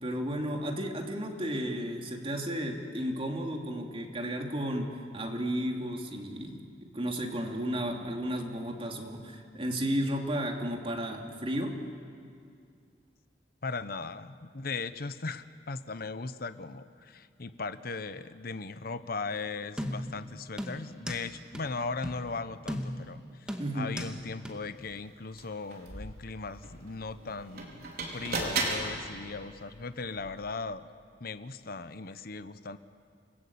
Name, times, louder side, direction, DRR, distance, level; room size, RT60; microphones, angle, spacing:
voice 1, 0.0-4.9 5.1-11.8 23.6-23.9, equal, 35° right, 2 dB, 2.9 m, -33 dB
voice 2, 13.6-27.8 28.1-30.9 31.2-32.8, left 4 dB, 60° left, 12 dB, 0.9 m, -38 dB
sound 1, 19.8-20.2 20.6-21.3 21.5-21.6 22.0-22.2 22.7-23.1 23.5-24.2 24.4-24.5, equal, 5° right, 2.1 m, -36 dB
sound 2, 24.8-24.9 25.3-30.6, right 3 dB, 60° right, 4.6 m, -37 dB
29.0 x 20.0 x 8.7 m, 2.3 s
head